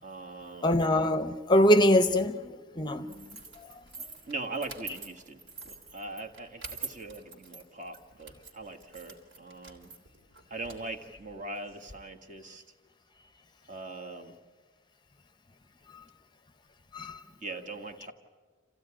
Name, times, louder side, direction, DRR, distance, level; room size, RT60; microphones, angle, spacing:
voice 1, 0.0-0.8 4.3-9.9 10.5-12.6 13.7-14.3 17.4-18.1, right 2 dB, 40° right, 1.7 m, -41 dB
voice 2, 0.6-3.2 3.7-3.8 16.9-17.2, left 1 dB, 20° left, 0.7 m, -24 dB
sound 1, 3.1-11.9, right 4 dB, 70° right, 3.4 m, -46 dB
27.0 x 16.0 x 9.9 m
head